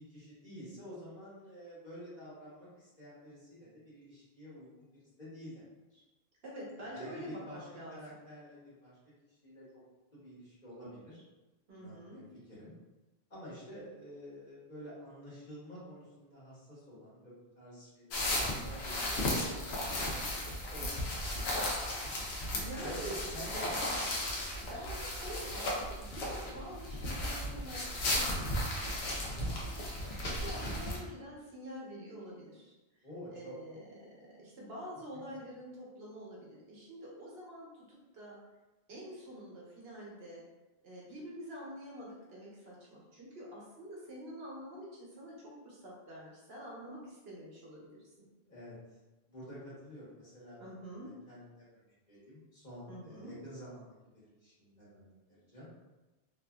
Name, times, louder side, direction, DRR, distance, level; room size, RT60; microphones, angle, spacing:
voice 1, 0.1-5.6 5.9-6.0 6.9-9.0 9.3-9.6 10.1-11.2 11.7-12.7 13.3-21.4 22.0-22.4 22.8-23.9 33.0-33.5 48.5-48.7 49.3-55.7, equal, 45° left, -9 dB, 1.1 m, -49 dB
voice 2, 6.4-8.2 11.7-12.2 22.5-23.2 24.7-29.2 29.6-32.7 33.3-38.4 38.9-40.4 40.8-48.0 50.6-51.1 52.9-53.3, equal, 70° right, -5 dB, 1.0 m, -47 dB
sound 1, 18.1-31.0, left 1 dB, 75° left, 0.8 m, -35 dB
2.7 x 2.4 x 2.2 m, 1.1 s
omnidirectional pair, 1.1 m